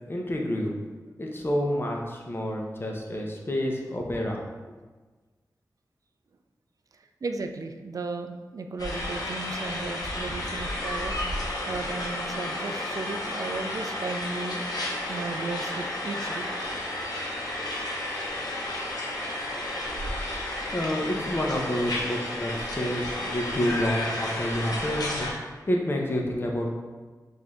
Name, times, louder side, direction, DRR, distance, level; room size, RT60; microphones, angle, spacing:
voice 1, 0.1-0.8 1.2-4.4 19.6-19.7 20.7-26.7, equal, 35° left, 0 dB, 0.8 m, -29 dB
voice 2, 7.2-11.2 11.7-14.6 15.1-16.5, right 3 dB, 60° right, 6 dB, 0.4 m, -35 dB
sound 1, 8.8-25.3, left 1 dB, 70° left, 0.8 m, -32 dB
4.7 x 2.7 x 3.6 m, 1.3 s
wide cardioid pair, 65°, 7 cm